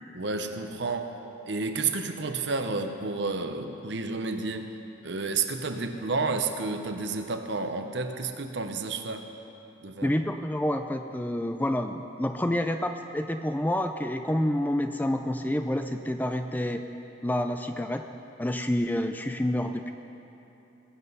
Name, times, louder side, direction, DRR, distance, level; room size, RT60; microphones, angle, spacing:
voice 1, 0.1-1.2 1.5-4.7 5.0-9.3 9.8-10.1, right 4 dB, 60° right, 6 dB, 0.9 m, -31 dB
voice 2, 10.0-16.8 17.2-18.0 18.4-19.9, left 1 dB, 10° left, 7 dB, 0.4 m, -28 dB
21.5 x 7.9 x 5.5 m, 3.0 s
head